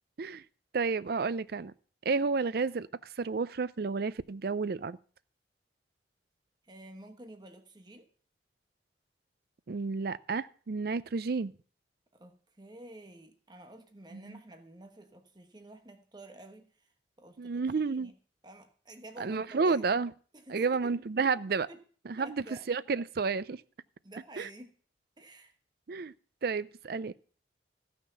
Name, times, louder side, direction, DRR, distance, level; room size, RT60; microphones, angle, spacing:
voice 1, 0.7-1.7 2.0-2.9 3.2-5.0 9.7-11.5 14.1-14.4 17.4-18.1 19.2-20.1 20.5-21.7 22.1-23.6 24.4-24.5 25.9-26.1 26.4-27.1, right 4 dB, 60° right, 0.5 m, -31 dB
voice 2, 6.6-8.1 12.1-16.9 17.2-18.2 18.4-19.8 20.3-20.9 21.7-21.8 22.2-22.6 24.0-24.7 25.2-25.5, right 1 dB, 25° right, 1.1 m, -50 dB
14.5 x 5.8 x 6.9 m
head